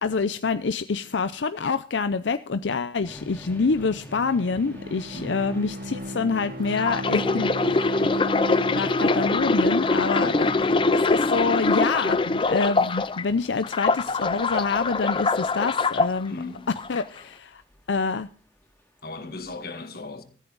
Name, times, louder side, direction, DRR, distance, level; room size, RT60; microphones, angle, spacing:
voice 1, 0.0-7.9 8.4-10.5 10.9-16.4 16.9-17.6 17.9-18.3, left 4 dB, 90° left, 0.6 m, -26 dB
sound 1, 3.0-19.6, left 1 dB, 10° left, 2.3 m, -49 dB
Bowed string instrument, 4.0-11.8, equal, 55° right, 1.1 m, -36 dB
voice 2, 5.1-5.4 10.2-10.7 16.3-16.7 19.0-20.2, left 2 dB, 55° left, 1.8 m, -37 dB
sound 2, 6.7-13.2 13.6-16.1 16.8-17.0, left 3 dB, 30° left, 0.5 m, -23 dB
14.0 x 13.5 x 4.0 m
head